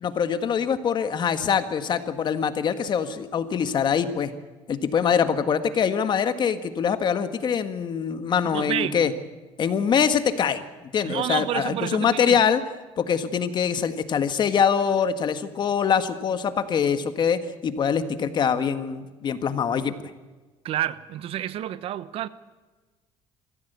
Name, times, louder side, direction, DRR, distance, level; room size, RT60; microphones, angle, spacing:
voice 1, 0.0-4.3 4.7-9.1 9.6-10.6 10.9-12.6 13.0-19.9, left 7 dB, 40° left, 1.7 m, -24 dB
voice 2, 8.5-9.1 11.0-12.4 20.6-22.3, right 11 dB, 60° right, 1.0 m, -29 dB
23.5 x 15.5 x 8.2 m
cardioid pair, 115°, 11 cm